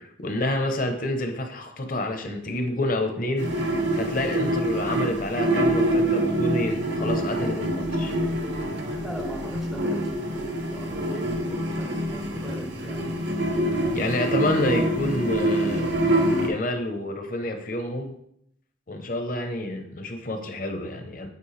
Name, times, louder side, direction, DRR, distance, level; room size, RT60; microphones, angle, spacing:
voice 1, 0.0-8.1 13.9-16.0 16.4-18.1 18.9-21.3, left 1 dB, 45° left, 5 dB, 0.9 m, -28 dB
sound 1, 3.4-16.5, right 1 dB, 70° right, 1.1 m, -25 dB
voice 2, 9.0-13.1, equal, ahead, -1 dB, 0.4 m, -39 dB
8.3 x 4.4 x 3.3 m, 0.74 s
head